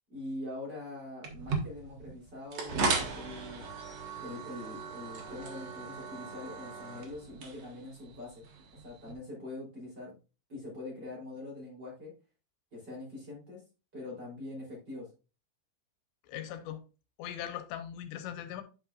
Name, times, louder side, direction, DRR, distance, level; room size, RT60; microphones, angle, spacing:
voice 1, 0.1-3.7 4.2-8.4 8.7-10.2 10.5-12.1 12.7-13.6 13.9-15.1, left 2 dB, 25° right, 3.4 m, -43 dB
sound 1, 1.2-9.1, right 4 dB, 60° right, 1.8 m, -37 dB
voice 2, 16.2-16.8 17.2-18.6, left 10 dB, 90° left, 3.1 m, -40 dB
10.0 x 5.7 x 2.5 m
omnidirectional pair, 4.9 m